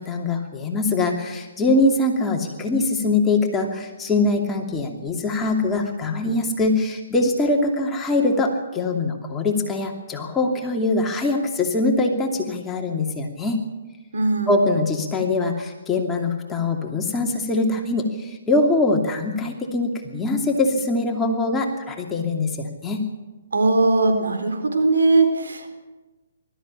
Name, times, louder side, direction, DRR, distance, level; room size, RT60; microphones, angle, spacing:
voice 1, 0.0-13.6 14.5-23.0, left 2 dB, 10° left, 1 dB, 2.7 m, -23 dB
voice 2, 14.1-14.5 23.5-25.7, right 3 dB, 75° right, 5 dB, 4.1 m, -19 dB
20.5 x 13.5 x 10.0 m, 1.2 s
hypercardioid pair, 140°, 0 cm